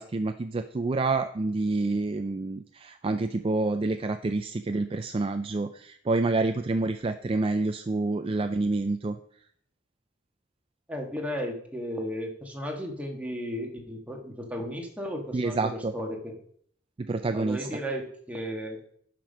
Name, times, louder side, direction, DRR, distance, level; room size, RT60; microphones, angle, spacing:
voice 1, 0.0-9.2 15.3-15.9 17.0-17.7, right 3 dB, 30° right, 9 dB, 0.4 m, -28 dB
voice 2, 10.9-16.4 17.3-19.0, equal, 10° right, 1 dB, 1.5 m, -35 dB
11.0 x 6.0 x 5.1 m, 0.63 s
head